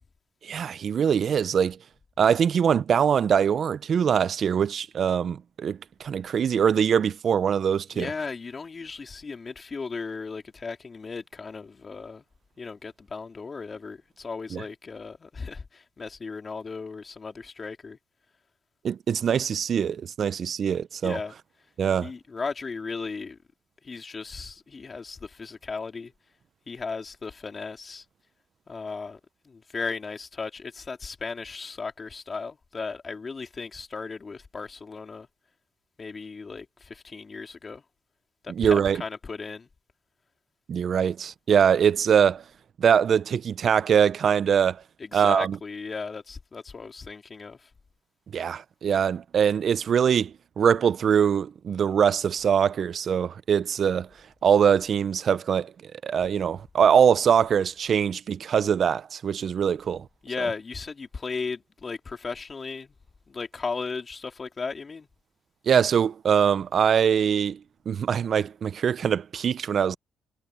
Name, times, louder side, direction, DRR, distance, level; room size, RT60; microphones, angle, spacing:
voice 1, 0.4-1.8 2.2-8.1 14.5-14.6 18.8-21.2 21.8-22.1 38.6-39.0 40.7-42.4 42.8-44.8 45.1-45.6 48.3-54.1 54.4-55.7 56.0-60.1 65.7-67.6 67.9-70.0, right 7 dB, 55° right, 0.4 m, -23 dB
voice 2, 7.9-12.2 12.6-18.0 21.0-21.4 22.0-23.4 23.8-26.1 26.7-28.0 28.7-35.3 36.0-37.8 38.4-39.7 45.0-47.7 60.2-62.9 63.3-65.1, left 4 dB, 35° left, 3.5 m, -36 dB
cardioid pair, 90°, 0 cm